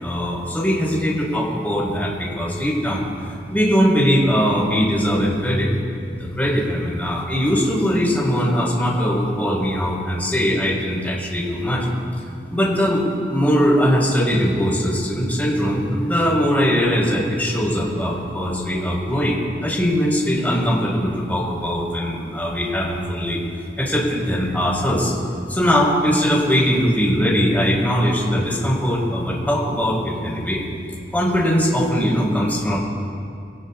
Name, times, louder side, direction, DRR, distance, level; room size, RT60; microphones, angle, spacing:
voice 1, 0.0-3.0 3.5-5.7 6.2-11.9 12.5-23.4 23.8-25.1 25.5-30.6 31.1-32.8, equal, 10° left, -5 dB, 4.7 m, -20 dB
24.0 x 18.5 x 2.5 m, 2.4 s
head